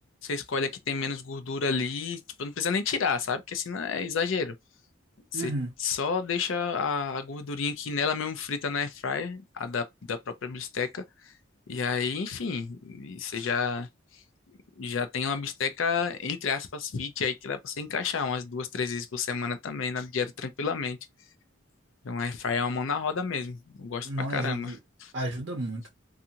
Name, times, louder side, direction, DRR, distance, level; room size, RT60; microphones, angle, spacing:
voice 1, 0.2-4.5 5.3-5.5 5.8-11.3 11.7-13.9 14.8-21.0 22.0-25.1, left 5 dB, 75° left, 0.5 m, -30 dB
voice 2, 5.3-5.7 24.0-24.8 25.1-25.9, right 1 dB, 60° right, 0.6 m, -32 dB
2.6 x 2.4 x 2.8 m
head